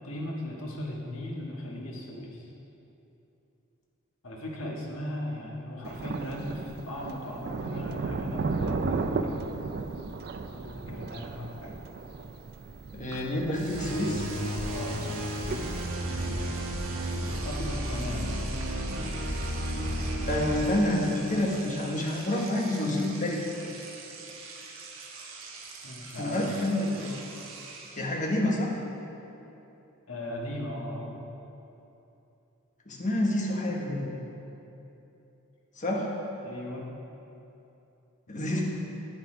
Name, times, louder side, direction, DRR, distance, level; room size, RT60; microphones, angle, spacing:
voice 1, 0.0-2.5 4.2-9.5 10.4-11.8 14.7-14.9 17.4-18.2 25.8-26.6 30.1-31.2 36.4-36.8, left 1 dB, 75° left, -2 dB, 1.5 m, -37 dB
Thunder, 5.8-15.8, right 4 dB, 50° right, 0.4 m, -35 dB
voice 2, 12.9-14.3 20.3-23.4 26.2-27.1 28.0-28.7 32.9-34.1 35.7-36.1 38.3-38.6, left 1 dB, 40° left, -2 dB, 1.3 m, -28 dB
Engine / Domestic sounds home sounds, 13.1-13.2 13.5-28.2, right 4 dB, 70° right, 1.2 m, -44 dB
sound 1, 13.7-20.8, equal, 90° right, 1.4 m, -32 dB
9.4 x 7.1 x 4.9 m, 2.9 s
head